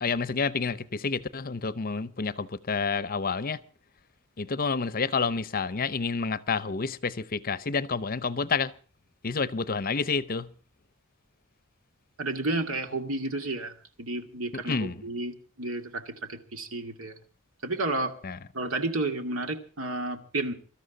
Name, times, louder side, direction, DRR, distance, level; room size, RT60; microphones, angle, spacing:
voice 1, 0.0-3.6 4.4-8.7 9.2-10.5 14.7-14.9 18.2-18.4, left 4 dB, 40° left, 0.7 m, -29 dB
voice 2, 12.2-17.2 17.6-18.2 18.5-20.5, right 2 dB, 70° right, 2.2 m, -31 dB
23.5 x 13.5 x 3.9 m
head